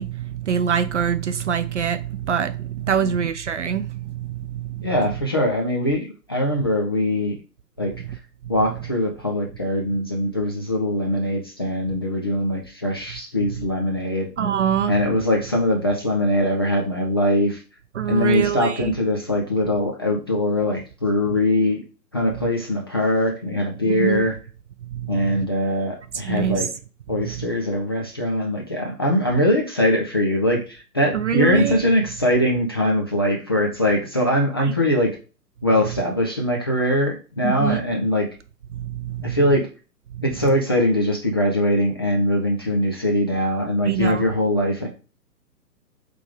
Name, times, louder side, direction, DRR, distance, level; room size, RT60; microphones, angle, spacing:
voice 1, 0.0-4.9 14.4-15.0 18.0-18.9 23.9-24.3 24.8-25.5 26.2-26.7 27.2-27.5 31.1-31.8 34.6-34.7 37.4-37.8 38.7-39.4 40.1-40.2 43.8-44.2, right 8 dB, 50° right, 0.5 m, -25 dB
voice 2, 4.8-7.3 7.8-7.9 8.5-14.3 14.9-17.6 18.1-21.8 22.1-24.3 25.1-26.7 27.1-35.2 35.6-38.3 39.2-39.7 40.2-44.9, left 1 dB, 15° left, 0.4 m, -22 dB
8.2 x 3.4 x 3.6 m
hypercardioid pair, 140°, 49 cm